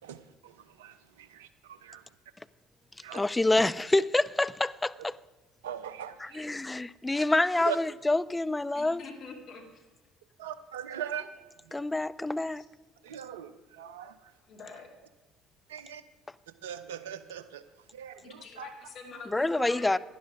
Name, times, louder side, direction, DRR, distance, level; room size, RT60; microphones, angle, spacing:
voice 1, 0.0-2.0 3.0-3.2 5.6-6.4 7.6-7.8 10.4-11.3 11.7-11.8 13.0-14.3 15.7-16.0 16.6-17.6 17.9-18.7, right 9 dB, 80° right, 0.7 m, -40 dB
voice 2, 3.1-5.2 6.2-9.0 11.7-12.6 19.3-20.0, left 2 dB, 15° left, 0.4 m, -27 dB
voice 3, 8.7-9.8 12.5-12.7 14.5-14.9 18.2-20.0, left 4 dB, 55° left, 2.4 m, -45 dB
11.5 x 10.5 x 4.9 m
hypercardioid pair, 60°, 0 cm